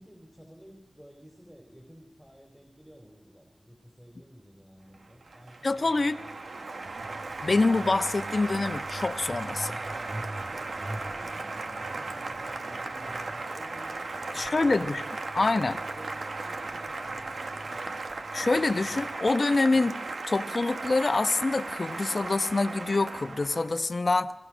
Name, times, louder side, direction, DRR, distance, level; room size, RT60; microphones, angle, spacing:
voice 1, 0.0-6.7 10.5-18.2, equal, 5° right, 2 dB, 4.1 m, -52 dB
Applause, 4.9-23.8, right 3 dB, 70° right, 1.6 m, -36 dB
voice 2, 5.6-6.2 7.4-9.8 14.3-15.0 15.3-15.8 18.3-20.0 20.3-24.3, left 3 dB, 55° left, 10 dB, 1.0 m, -26 dB
Truck, 6.9-19.2, right 1 dB, 40° right, 1.9 m, -46 dB
28.0 x 20.5 x 6.3 m, 1.0 s
cardioid pair, 45°, 0 cm